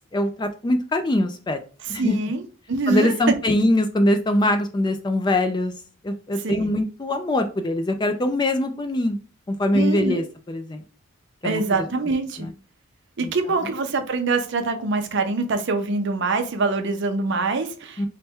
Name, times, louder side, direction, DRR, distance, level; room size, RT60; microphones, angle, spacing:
voice 1, 0.1-1.6 1.9-2.2 2.9-5.7 6.0-9.2 9.5-10.8 11.4-11.9 12.4-12.5 13.2-13.3 18.0-18.1, left 1 dB, 20° left, 0.3 m, -22 dB
voice 2, 2.0-2.4 2.7-3.2 6.4-6.7 9.7-10.2 11.4-12.5 13.2-18.1, right 3 dB, 55° right, 0.5 m, -24 dB
3.3 x 2.1 x 4.3 m
head